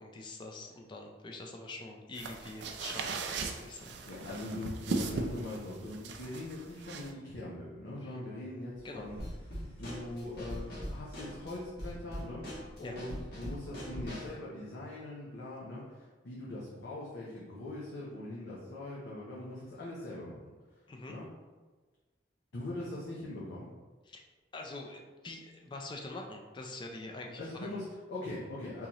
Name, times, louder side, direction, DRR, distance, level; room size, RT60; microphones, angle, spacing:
voice 1, 0.0-3.2 3.6-3.9 8.0-8.2 8.8-9.1 12.8-13.0 20.9-21.2 24.1-24.2 24.5-27.8, left 2 dB, 25° left, 2 dB, 0.3 m, -45 dB
sound 1, 2.1-7.1, right 3 dB, 70° right, 0.4 m, -38 dB
voice 2, 4.0-9.2 9.8-12.5 12.8-20.5 21.1-21.3 22.5-23.7 27.4-28.9, left 1 dB, 85° left, -7 dB, 0.7 m, -41 dB
sound 2, 8.7-11.7 12.3-13.2, right 1 dB, 5° left, 1.3 m, -55 dB
Drum kit / Snare drum, 9.2-14.4, equal, 60° left, 1.2 m, -42 dB
3.8 x 2.8 x 2.9 m, 1.3 s
head